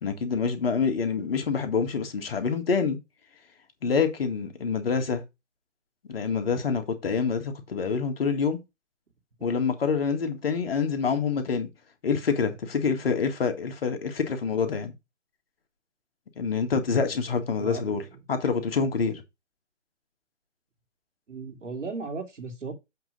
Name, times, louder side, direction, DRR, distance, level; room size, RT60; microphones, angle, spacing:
voice 1, 0.0-3.0 3.8-5.2 6.1-8.6 9.4-11.7 12.0-14.9 16.4-18.0 18.3-19.2, left 5 dB, 50° left, 1.9 m, -26 dB
voice 2, 17.5-18.1 21.3-22.7, right 4 dB, 70° right, 2.9 m, -36 dB
7.9 x 3.8 x 5.3 m
figure-of-eight pair, 150°, 38 cm